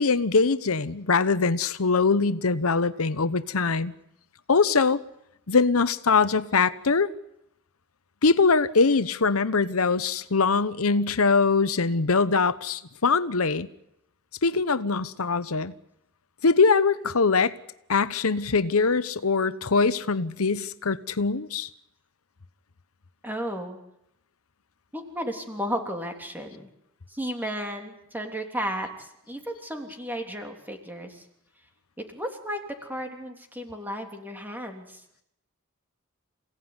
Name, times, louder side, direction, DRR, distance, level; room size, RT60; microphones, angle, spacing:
voice 1, 0.0-3.9 4.5-5.0 5.5-7.1 8.2-13.7 14.4-15.7 16.4-17.6 17.9-21.7, left 4 dB, 85° left, 0.9 m, -22 dB
voice 2, 23.2-23.8 24.9-26.7 27.1-31.2 32.0-35.0, equal, 10° right, 3.3 m, -34 dB
28.0 x 17.0 x 9.7 m
head